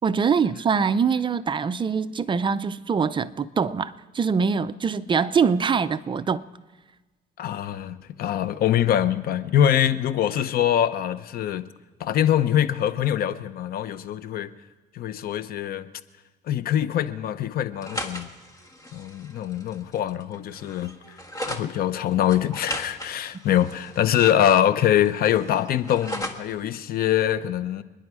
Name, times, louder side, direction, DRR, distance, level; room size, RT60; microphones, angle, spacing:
voice 1, 0.0-6.5, right 6 dB, 30° right, 0.5 m, -23 dB
voice 2, 7.4-11.6 12.0-14.5 14.9-15.9 16.5-18.3 18.9-20.9 21.4-27.8, left 10 dB, 60° left, 0.8 m, -23 dB
sound 1, 17.7-21.7 22.3-24.7 25.0-26.5, equal, 20° left, 1.6 m, -37 dB
28.0 x 10.5 x 4.8 m
cardioid pair, 110°, 17 cm